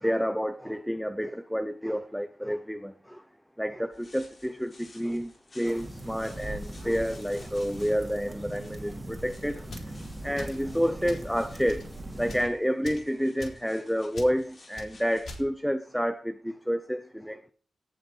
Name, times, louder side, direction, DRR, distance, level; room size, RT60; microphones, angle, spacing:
voice 1, 0.0-3.2 3.6-9.7 10.2-11.9 12.2-17.5, equal, ahead, 0.7 m, -29 dB
sound 1, 3.9-15.4, left 2 dB, 35° left, 7.1 m, -56 dB
sound 2, 5.6-12.4, right 1 dB, 25° right, 2.8 m, -40 dB
sound 3, 9.6-9.9 10.3-10.6 11.0-11.3 11.6-11.9 12.2-12.5 12.8-13.1 13.4-13.6 14.1-14.3 14.7-14.9 15.2-15.4, left 2 dB, 65° left, 3.7 m, -43 dB
17.5 x 6.6 x 4.4 m
wide cardioid pair, 105°, 0 cm